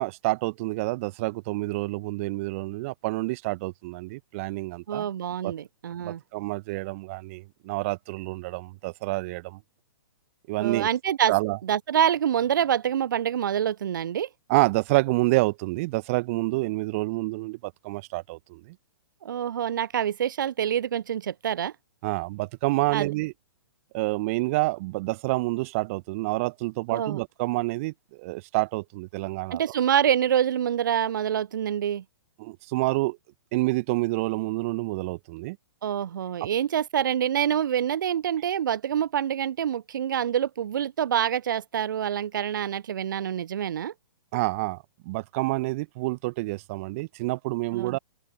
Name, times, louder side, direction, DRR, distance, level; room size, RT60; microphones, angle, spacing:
voice 1, 0.0-5.1 5.4-5.5 6.0-9.6 10.5-10.9 11.3-11.6 14.5-18.7 22.0-23.3 23.9-27.9 28.2-29.6 32.4-33.2 33.5-35.6 44.3-44.8 45.0-48.0, right 22 dB, 35° right, 1.2 m, -28 dB
voice 2, 4.9-6.2 10.6-11.3 11.6-14.3 19.2-21.7 22.9-23.1 26.9-27.2 29.5-32.0 35.8-43.9 47.7-48.0, right 9 dB, 60° right, 0.5 m, -26 dB
open air
figure-of-eight pair, 115°, 12 cm